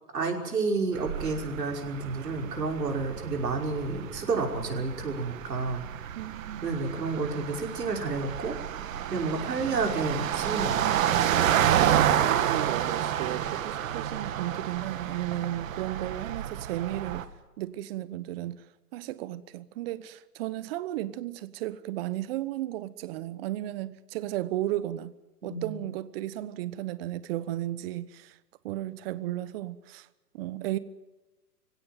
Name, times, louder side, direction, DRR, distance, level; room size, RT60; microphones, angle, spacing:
voice 1, 0.1-5.8 6.6-8.6 9.1-10.8 25.4-25.8, right 3 dB, 80° right, 5.6 m, -30 dB
sound 1, 0.9-17.2, right 10 dB, 55° right, 2.0 m, -30 dB
voice 2, 6.1-6.7 10.7-11.0 12.1-17.3 17.6-18.6 18.9-25.1 25.4-28.4 28.6-30.1 30.3-30.8, right 14 dB, 35° right, 1.1 m, -34 dB
25.5 x 17.0 x 9.3 m
hypercardioid pair, 135°, 48 cm